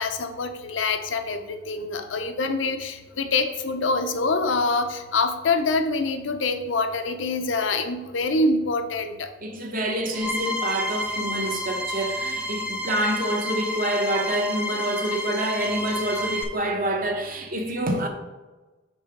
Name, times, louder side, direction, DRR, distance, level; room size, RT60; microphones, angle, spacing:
voice 1, 0.0-9.3, left 3 dB, 85° left, 0.6 m, -25 dB
voice 2, 9.4-18.1, right 1 dB, 45° right, 0.9 m, -27 dB
sound 1, 10.1-16.4, left 1 dB, 5° right, 0.5 m, -30 dB
5.4 x 3.8 x 5.9 m
head